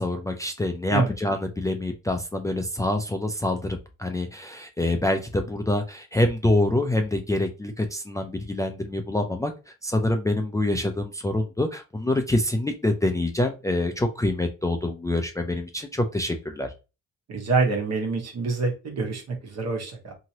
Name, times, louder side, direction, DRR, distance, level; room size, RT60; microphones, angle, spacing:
voice 1, 0.0-9.5 9.8-16.7, left 1 dB, 10° left, 4 dB, 0.4 m, -26 dB
voice 2, 17.3-20.1, right 4 dB, 60° right, 2 dB, 1.2 m, -26 dB
2.9 x 2.8 x 2.8 m, 0.29 s
cardioid pair, 90°, 30 cm